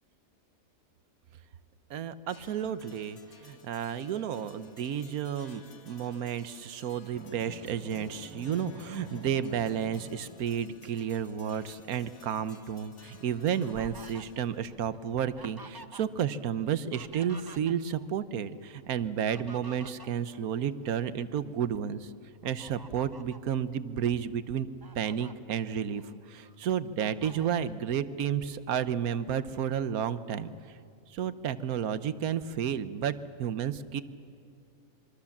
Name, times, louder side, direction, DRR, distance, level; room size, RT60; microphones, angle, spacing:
voice 1, 1.9-22.1 22.4-24.7 24.9-26.0 26.3-30.8 31.1-34.0, right 8 dB, 85° right, 14 dB, 1.3 m, -32 dB
sound 1, 2.3-14.8, left 4 dB, 75° left, 2.1 m, -57 dB
Drum, 7.1-10.9, left 1 dB, 20° left, 2.3 m, -49 dB
Fowl, 13.0-16.3 16.6-18.1 19.0-21.1 21.6-21.8 22.4-23.5 24.1-24.2 24.6-25.3 25.9-26.6 27.0-27.7, right 3 dB, 25° right, 0.5 m, -50 dB
25.0 x 24.0 x 7.2 m, 2.3 s
omnidirectional pair, 1.5 m